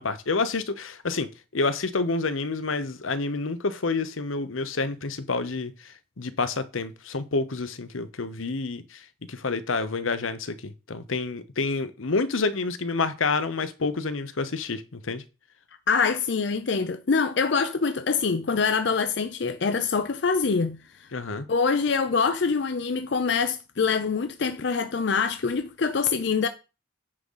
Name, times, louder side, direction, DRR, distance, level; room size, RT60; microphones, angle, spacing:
voice 1, 0.0-15.2 21.1-21.5, left 3 dB, 85° left, 0.9 m, -28 dB
voice 2, 15.9-21.1 21.5-26.5, left 5 dB, 60° left, 0.5 m, -25 dB
9.7 x 3.9 x 5.6 m
head